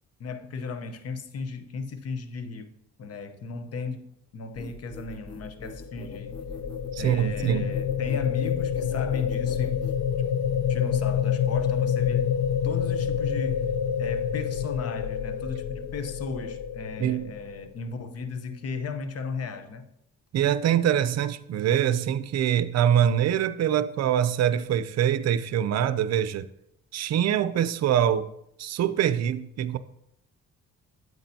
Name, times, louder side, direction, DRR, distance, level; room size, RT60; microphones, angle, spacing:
voice 1, 0.2-2.7 3.0-6.3 7.0-9.8 10.7-12.3 12.6-13.6 14.0-19.8, left 4 dB, 55° left, 0.9 m, -36 dB
sound 1, 4.5-10.0, left 2 dB, 15° left, 0.5 m, -43 dB
sound 2, 5.6-17.8, left 8 dB, 80° left, 0.6 m, -28 dB
voice 2, 6.9-7.7 17.0-17.3 20.3-26.5 26.9-28.3 28.6-29.8, right 10 dB, 60° right, 0.5 m, -24 dB
8.8 x 8.2 x 2.8 m
cardioid pair, 90°, 30 cm